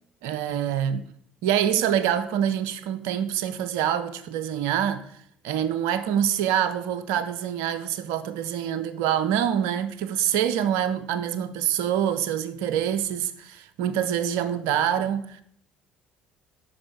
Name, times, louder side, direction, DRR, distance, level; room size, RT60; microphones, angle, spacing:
voice 1, 0.2-1.0 1.4-5.1 5.4-15.4, right 9 dB, 65° right, 0.5 m, -25 dB
8.9 x 6.1 x 3.4 m
figure-of-eight pair, 50°, 5 cm